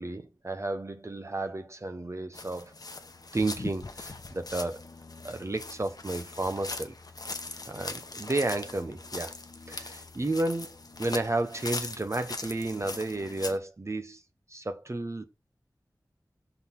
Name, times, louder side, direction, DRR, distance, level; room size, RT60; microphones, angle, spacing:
voice 1, 0.0-2.7 3.3-4.8 5.2-6.9 7.7-9.4 9.7-10.7 11.0-14.2 14.5-15.2, right 2 dB, 40° right, 0.8 m, -32 dB
sound 1, 2.3-13.6, left 3 dB, 65° left, 0.8 m, -40 dB
5.5 x 4.0 x 5.8 m
wide cardioid pair, 50°, 7 cm